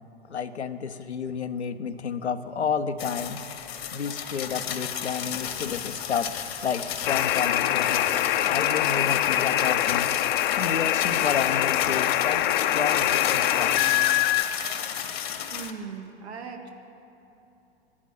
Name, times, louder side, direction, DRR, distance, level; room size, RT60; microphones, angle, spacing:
voice 1, 0.3-3.4 3.9-6.3 6.6-8.1 8.4-10.1 10.6-12.4 12.7-13.7, left 6 dB, 85° left, 9 dB, 0.9 m, -31 dB
sound 1, 3.0-15.7, left 8 dB, 70° left, 1.3 m, -33 dB
sound 2, 7.0-14.4, left 13 dB, 50° left, 0.7 m, -24 dB
voice 2, 15.5-16.7, right 6 dB, 80° right, 3 dB, 1.9 m, -38 dB
12.5 x 10.0 x 9.4 m, 2.9 s
hypercardioid pair, 105°, 32 cm